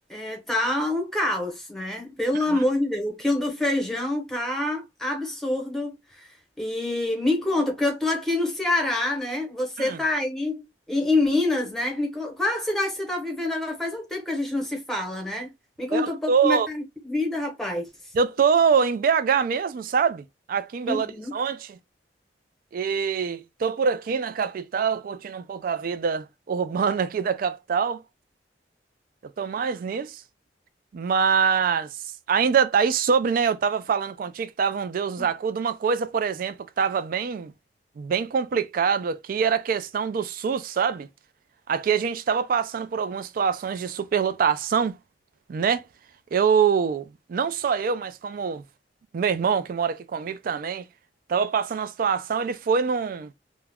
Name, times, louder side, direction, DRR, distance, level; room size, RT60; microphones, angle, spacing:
voice 1, 0.1-15.5 15.8-17.9 20.8-21.3 35.2-35.3, left 2 dB, ahead, 0.8 m, -26 dB
voice 2, 15.9-16.7 18.1-21.1 21.3-21.8 22.7-28.0 29.4-30.2 30.9-32.0 32.3-37.5 38.0-41.1 41.7-45.0 45.5-45.8 46.3-48.6 49.1-50.9 51.3-53.3, right 6 dB, 50° right, 0.3 m, -24 dB
2.3 x 2.1 x 3.4 m
head